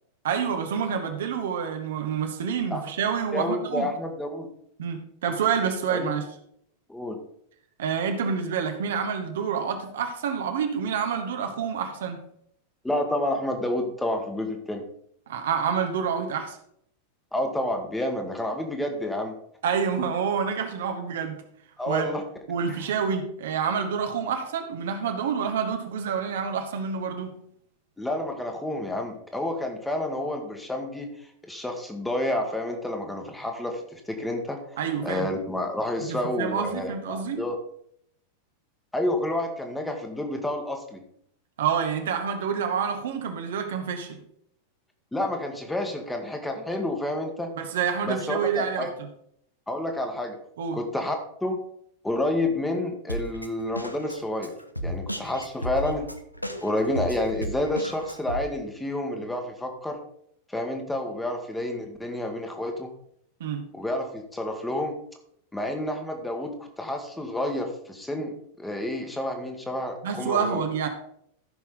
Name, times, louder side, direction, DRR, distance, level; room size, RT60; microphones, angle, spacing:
voice 1, 0.2-3.9 4.8-6.2 7.8-12.2 15.3-16.6 19.6-21.4 21.9-22.1 22.5-27.3 34.8-35.3 36.1-37.4 41.6-44.2 47.6-49.1 50.6-50.8 63.4-63.6 70.0-70.9, right 7 dB, 60° right, 5 dB, 1.3 m, -28 dB
voice 2, 3.3-4.5 5.9-6.1 6.9-7.2 12.8-14.8 17.3-19.3 21.8-22.2 28.0-31.1 31.4-34.6 35.0-37.6 38.9-41.0 45.1-47.5 48.0-48.9 49.7-50.4 50.7-51.2 51.4-51.6 52.0-54.5 54.8-56.1 56.6-60.0 60.5-62.9 63.7-64.9 65.5-70.6, left 1 dB, 5° left, 3 dB, 1.6 m, -29 dB
Drum kit, 53.1-58.4, equal, 90° left, 0.7 m, -34 dB
14.5 x 6.1 x 3.8 m, 0.69 s
figure-of-eight pair, 90°, 0 cm